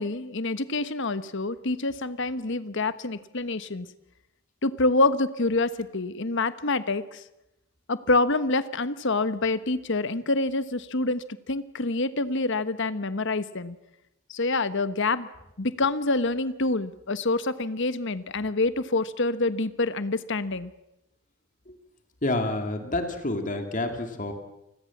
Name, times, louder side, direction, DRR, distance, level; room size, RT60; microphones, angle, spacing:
voice 1, 0.0-3.9 4.6-7.2 7.9-13.8 14.3-15.3 15.6-20.7, left 2 dB, 60° left, 13 dB, 1.3 m, -26 dB
voice 2, 22.2-24.3, left 2 dB, 40° left, 6 dB, 2.8 m, -28 dB
29.0 x 20.5 x 7.3 m, 0.87 s
head